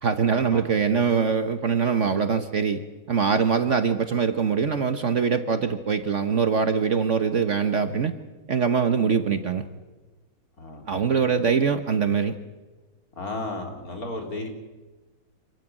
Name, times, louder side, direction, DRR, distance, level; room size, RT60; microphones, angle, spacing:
voice 1, 0.0-2.8 3.1-8.1 8.5-9.7 10.9-12.4, right 6 dB, 50° right, 9 dB, 1.3 m, -23 dB
voice 2, 10.6-10.9 13.2-14.5, left 2 dB, 55° left, 3 dB, 4.0 m, -33 dB
27.0 x 15.0 x 9.1 m, 1.2 s
omnidirectional pair, 1.9 m